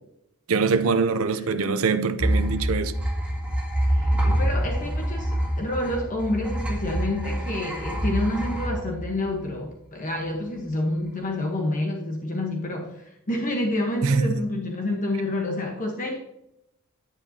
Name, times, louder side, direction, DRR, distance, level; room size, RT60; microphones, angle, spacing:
voice 1, 0.5-2.9 14.0-14.4, right 4 dB, 70° right, 0.6 m, -23 dB
sound 1, 2.2-9.7, right 1 dB, 5° right, 2.8 m, -26 dB
voice 2, 3.9-16.2, left 1 dB, 40° left, 1.1 m, -28 dB
9.9 x 9.8 x 2.8 m
head